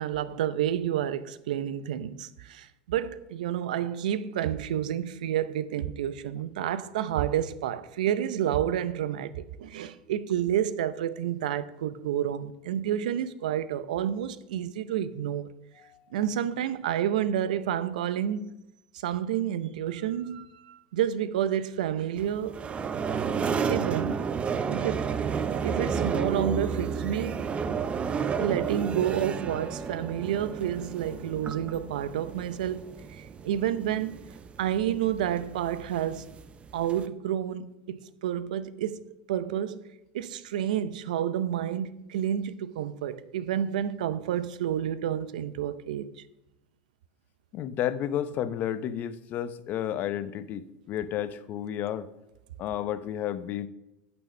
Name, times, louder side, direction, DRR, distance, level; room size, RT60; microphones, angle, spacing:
voice 1, 0.0-15.5 16.1-18.6 19.0-22.6 23.7-24.2 24.7-25.1 25.6-27.4 28.4-34.2 34.6-36.3 36.7-39.0 39.3-39.9 40.1-46.1, right 10 dB, 80° right, 0.6 m, -30 dB
sound 1, 22.2-37.1, right 6 dB, 30° right, 0.6 m, -32 dB
voice 2, 47.5-52.1 52.6-53.7, left 10 dB, 45° left, 0.7 m, -32 dB
9.2 x 6.2 x 6.3 m
hypercardioid pair, 95°, 4 cm